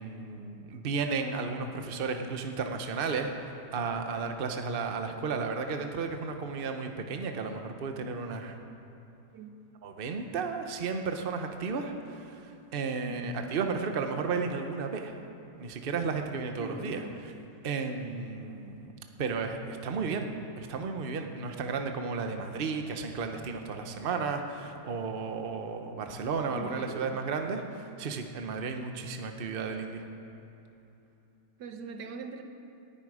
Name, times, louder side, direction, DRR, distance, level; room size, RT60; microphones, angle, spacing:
voice 1, 0.0-8.6 9.8-15.1 15.6-17.0 17.6-18.9 19.2-20.3 20.6-30.0, right 4 dB, 40° right, 5 dB, 1.0 m, -33 dB
voice 2, 13.0-13.4 16.6-17.1 26.5-27.2 31.6-32.4, right 4 dB, 85° right, 6 dB, 1.6 m, -41 dB
19.0 x 11.5 x 4.9 m, 2.9 s
omnidirectional pair, 1.8 m